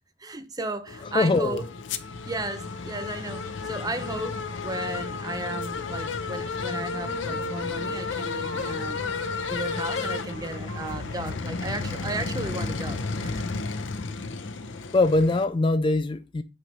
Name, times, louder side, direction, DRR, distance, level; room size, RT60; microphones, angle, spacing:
voice 1, 0.2-1.6 2.2-9.0 9.5-13.6, right 2 dB, 20° right, 0.6 m, -34 dB
sound 1, 0.9-15.4, left 4 dB, 75° left, 0.6 m, -32 dB
voice 2, 1.1-1.6 14.9-16.4, left 2 dB, 25° left, 0.3 m, -22 dB
Wind instrument woodwind instrument, 6.9-13.6, right 2 dB, 60° right, 1.3 m, -44 dB
8.9 x 3.1 x 5.3 m
head